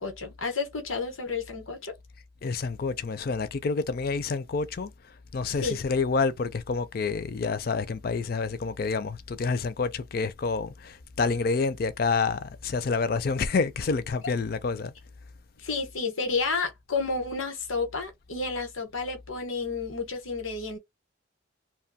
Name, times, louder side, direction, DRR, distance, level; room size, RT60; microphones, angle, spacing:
voice 1, 0.0-1.9 5.6-5.8 15.6-20.8, left 4 dB, 90° left, 1.1 m, -31 dB
voice 2, 2.4-4.9 5.3-14.9, left 4 dB, 50° left, 0.4 m, -28 dB
2.7 x 2.2 x 2.7 m
head